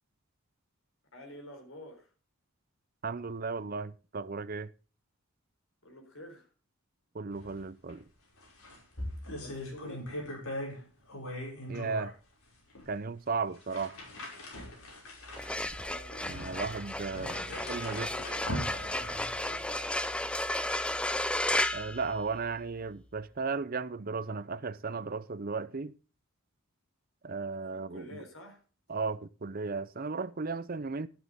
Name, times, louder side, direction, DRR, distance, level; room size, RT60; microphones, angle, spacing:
voice 1, 1.1-2.1 5.8-6.5 9.3-10.2 15.7-16.3 17.1-20.4 27.7-28.6, left 1 dB, 60° left, 4.3 m, -49 dB
voice 2, 3.0-4.7 7.1-8.0 11.7-12.1 12.9-13.9 16.2-17.4 17.7-18.1 21.7-25.9 27.2-28.2 28.9-31.1, right 4 dB, 40° right, 0.6 m, -35 dB
sound 1, 7.3-7.6 7.9-8.0 8.4-10.8 11.1-12.1 12.8-12.9 13.5-19.6, left 1 dB, 80° left, 5.8 m, -41 dB
sound 2, 15.2-22.7, left 1 dB, 5° left, 0.5 m, -34 dB
12.5 x 10.0 x 3.6 m
head